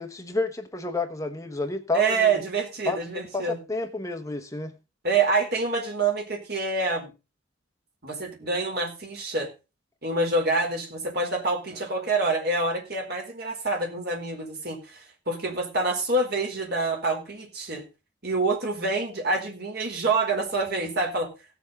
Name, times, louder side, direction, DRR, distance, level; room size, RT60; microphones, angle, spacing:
voice 1, 0.0-2.4 2.9-3.0 3.3-4.7, left 3 dB, 15° left, 6 dB, 1.2 m, -30 dB
voice 2, 1.9-3.6 5.0-7.1 8.0-9.5 10.0-17.8 18.2-21.3, right 3 dB, 55° right, 2 dB, 4.4 m, -26 dB
17.0 x 7.1 x 5.4 m, 0.30 s
head